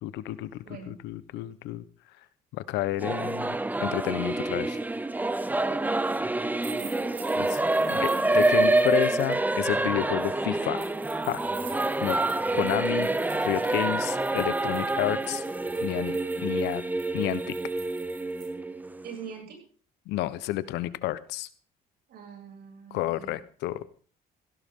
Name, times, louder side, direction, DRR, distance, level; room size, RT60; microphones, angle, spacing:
voice 1, 0.0-0.6 0.9-1.8 2.5-3.6 3.8-4.8 7.4-7.5 7.9-8.1 8.3-10.9 11.3-11.4 12.0-12.2 12.5-13.1 13.4-15.4 15.8-16.8 17.1-17.4 20.1-21.5 22.9-23.8, left 15 dB, 90° left, 15 dB, 1.1 m, -30 dB
Singing / Musical instrument, 3.0-19.3, right 2 dB, 10° right, 0.8 m, -27 dB
sound 1, 6.6-9.3 10.8-18.5, right 7 dB, 85° right, 6.5 m, -48 dB
voice 2, 6.7-7.2 7.8-8.1 19.0-19.6 22.1-23.4, right 6 dB, 70° right, 2 dB, 7.4 m, -43 dB
17.0 x 16.5 x 3.8 m, 0.43 s
cardioid pair, 110°, 17 cm